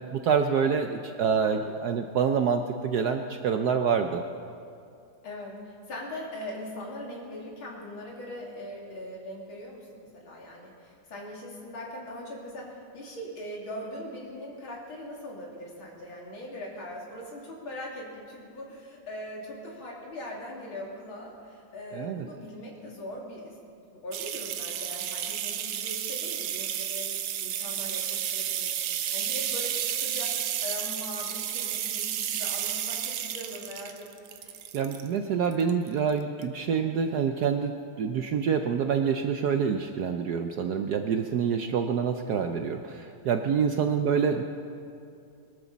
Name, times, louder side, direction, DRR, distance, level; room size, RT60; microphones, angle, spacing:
voice 1, 0.1-4.2 21.9-22.3 34.7-37.7 38.0-44.4, right 6 dB, 70° right, 6 dB, 1.0 m, -26 dB
voice 2, 5.2-28.7 29.1-30.3 30.6-34.5 43.8-43.9, left 1 dB, 70° left, -3 dB, 3.6 m, -41 dB
sound 1, 24.1-35.1 35.5-36.1 36.4-36.5, right 10 dB, 85° right, 1.7 m, -32 dB
22.5 x 13.5 x 4.1 m, 2.4 s
omnidirectional pair, 2.3 m